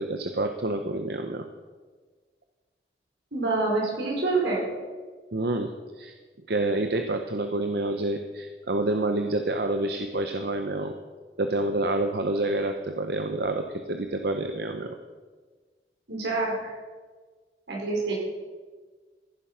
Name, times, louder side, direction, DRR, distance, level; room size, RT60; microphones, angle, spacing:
voice 1, 0.0-1.5 5.3-6.1 6.5-11.0 11.4-15.0, right 2 dB, 65° right, 6 dB, 0.8 m, -28 dB
voice 2, 3.3-4.6 16.1-16.7 17.7-18.1, right 3 dB, 85° right, -2 dB, 5.0 m, -26 dB
15.5 x 10.5 x 5.6 m, 1.4 s
head